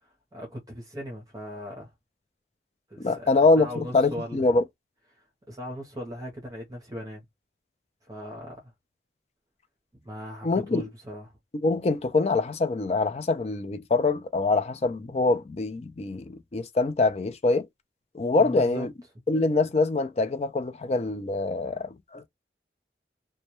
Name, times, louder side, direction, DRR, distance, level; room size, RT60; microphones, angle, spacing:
voice 1, 0.0-1.9 2.9-4.4 5.2-7.2 8.0-8.7 10.0-11.3 18.4-18.9, equal, 20° right, 0.7 m, -39 dB
voice 2, 3.0-4.6 10.4-10.8 11.6-17.7 18.1-18.9 19.3-22.2, left 3 dB, 35° left, 0.4 m, -24 dB
2.2 x 2.2 x 2.8 m
head